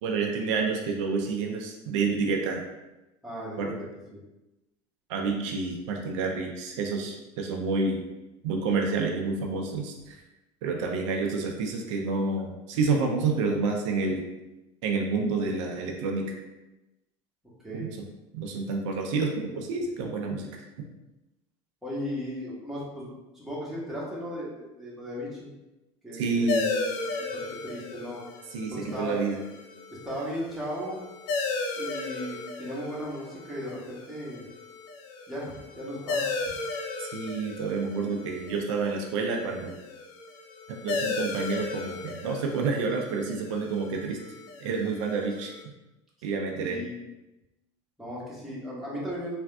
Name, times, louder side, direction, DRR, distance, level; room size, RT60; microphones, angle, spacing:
voice 1, 0.0-2.6 3.6-3.7 5.1-8.0 8.4-10.2 10.6-14.2 14.8-16.4 17.7-18.1 18.3-20.9 26.1-26.7 28.5-29.4 37.0-39.7 40.7-44.2 44.6-45.5 46.2-46.8, right 4 dB, 80° right, 1 dB, 0.4 m, -29 dB
voice 2, 3.2-3.7 4.1-4.2 17.6-17.9 21.8-25.5 26.0-28.2 28.7-29.2 29.9-31.0 31.7-34.4 35.3-36.3 46.6-47.0 48.0-49.4, equal, ahead, -7 dB, 1.3 m, -36 dB
sound 1, 26.5-45.6, left 3 dB, 65° left, 0.5 m, -35 dB
3.4 x 2.5 x 2.2 m, 1.0 s
supercardioid pair, 90°, 16 cm